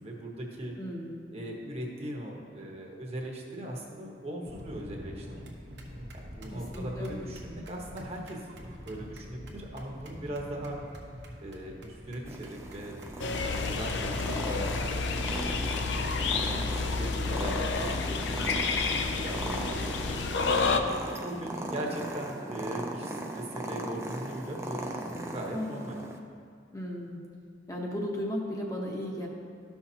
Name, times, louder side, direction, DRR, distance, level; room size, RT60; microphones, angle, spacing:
voice 1, 0.0-0.7 1.3-5.3 6.1-10.8 11.4-15.5 16.2-18.6 18.9-20.6 21.0-26.0, right 1 dB, 35° right, -1 dB, 1.1 m, -40 dB
voice 2, 0.8-1.3 6.5-7.3 25.5-25.9 26.7-27.2 27.7-29.3, equal, 20° left, -1 dB, 0.9 m, -35 dB
sound 1, 4.5-17.1, equal, 75° right, 1.2 m, -45 dB
Purr, 12.3-26.2, right 1 dB, 15° right, 0.6 m, -38 dB
sound 2, 13.2-20.8, left 4 dB, 80° left, 0.5 m, -30 dB
13.0 x 5.8 x 2.8 m, 2.3 s
head